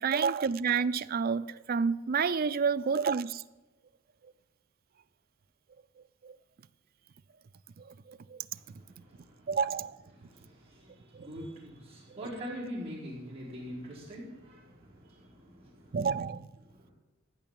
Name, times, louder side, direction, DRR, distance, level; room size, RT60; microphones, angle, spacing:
voice 1, 0.0-3.4 6.2-6.3 8.1-8.4 9.5-10.0 11.1-11.3 15.9-16.5, right 6 dB, 45° right, 0.4 m, -29 dB
voice 2, 8.6-9.5 10.1-16.0 16.7-16.9, equal, 30° right, 4.9 m, -44 dB
15.0 x 6.0 x 8.9 m
head